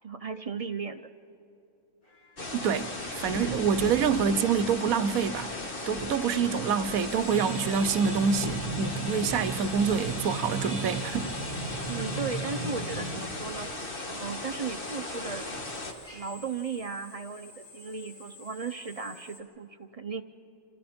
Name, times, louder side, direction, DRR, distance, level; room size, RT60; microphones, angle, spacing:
voice 1, 0.0-1.0 11.9-13.7 14.1-15.5 16.1-20.2, right 5 dB, 50° right, 0.4 m, -36 dB
Drill, 2.0-19.4, left 2 dB, 65° left, 3.2 m, -52 dB
sound 1, 2.4-15.9, left 2 dB, 40° left, 1.8 m, -36 dB
voice 2, 2.5-2.9 3.2-5.5 5.9-11.3, right 6 dB, 75° right, 1.2 m, -26 dB
sound 2, 7.3-13.1, right 3 dB, 5° right, 4.0 m, -36 dB
29.5 x 27.0 x 4.3 m
omnidirectional pair, 1.5 m